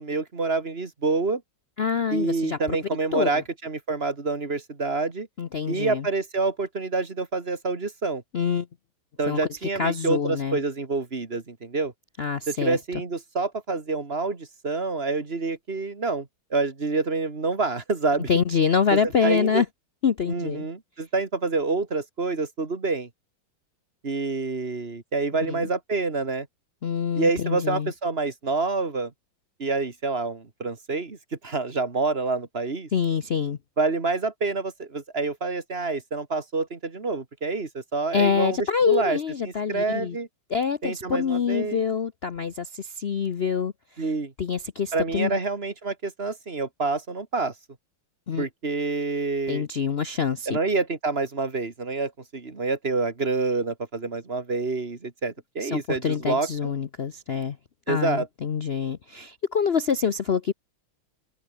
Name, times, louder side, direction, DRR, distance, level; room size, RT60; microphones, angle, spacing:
voice 1, 0.0-1.4 2.1-5.3 5.7-8.2 9.2-11.9 12.5-18.3 18.9-19.6 20.3-23.1 24.0-26.5 27.2-29.1 29.6-31.2 31.4-32.9 33.8-38.6 38.9-39.2 39.5-40.3 40.8-41.8 44.0-44.3 44.9-47.5 48.4-49.7 50.5-56.7 57.9-58.3, right 3 dB, 30° right, 2.3 m, -27 dB
voice 2, 1.8-2.8 3.1-3.4 5.4-6.1 8.3-8.7 9.3-10.6 12.2-12.8 18.3-19.7 20.0-20.7 25.5-25.7 26.8-27.9 32.9-33.6 38.1-40.2 40.5-44.0 44.4-45.3 48.3-48.5 49.5-50.6 55.6-57.6 57.9-60.5, left 6 dB, 75° left, 0.5 m, -26 dB
open air
omnidirectional pair, 2.3 m